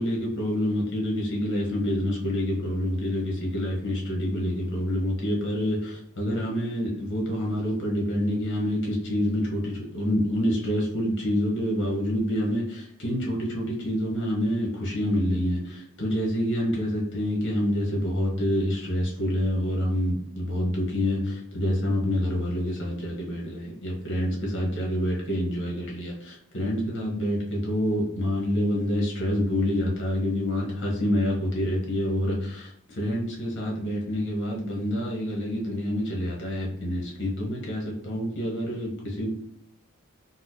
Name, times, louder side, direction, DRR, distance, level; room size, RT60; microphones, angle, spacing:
voice 1, 0.0-39.3, equal, 55° left, -1 dB, 1.0 m, -27 dB
4.1 x 2.1 x 2.7 m, 0.70 s
head